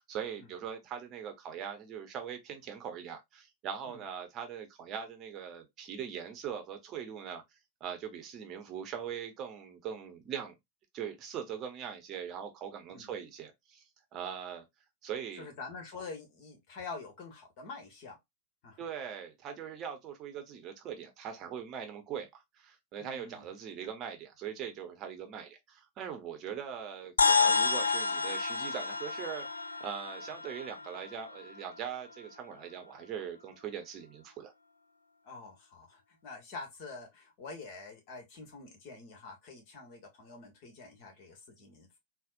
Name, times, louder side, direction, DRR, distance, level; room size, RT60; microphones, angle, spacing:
voice 1, 0.0-7.4 7.8-10.5 10.9-13.8 14.1-14.6 15.0-15.5 18.8-29.5 29.8-34.5, right 8 dB, 35° right, 0.8 m, -41 dB
voice 2, 15.3-18.2 18.6-18.8 23.0-23.5 35.2-42.0, left 4 dB, 45° left, 1.3 m, -46 dB
sound 1, 27.2-31.8, left 4 dB, 75° left, 0.3 m, -30 dB
4.0 x 2.1 x 2.5 m
figure-of-eight pair, 90°, 0 cm